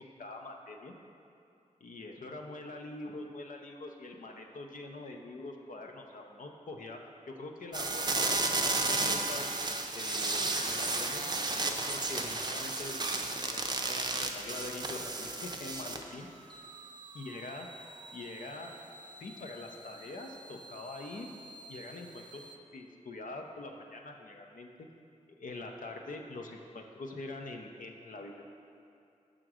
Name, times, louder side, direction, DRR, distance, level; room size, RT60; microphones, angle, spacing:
voice 1, 0.2-0.9 1.8-7.0 7.3-9.5 9.9-11.3 11.9-16.3 17.1-17.7 18.1-18.7 19.2-21.3 21.7-22.4 22.7-24.7 25.4-28.4, left 2 dB, 85° left, 2 dB, 0.6 m, -44 dB
sound 1, 7.7-16.1 16.5-22.5, right 2 dB, 35° right, 0.5 m, -35 dB
5.9 x 3.8 x 6.1 m, 2.5 s
wide cardioid pair, 85°, 13 cm